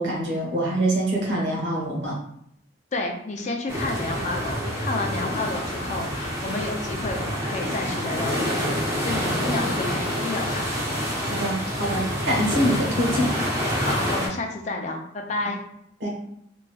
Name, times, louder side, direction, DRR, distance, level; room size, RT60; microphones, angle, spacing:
voice 1, 0.0-2.2 11.2-13.3 16.0-16.1, right 1 dB, 80° right, -3 dB, 1.0 m, -25 dB
voice 2, 2.9-10.7 13.8-15.6, left 2 dB, 40° left, 2 dB, 0.4 m, -31 dB
sound 1, 3.7-14.3, equal, 15° right, 0.6 m, -27 dB
3.0 x 2.8 x 2.3 m, 0.72 s
head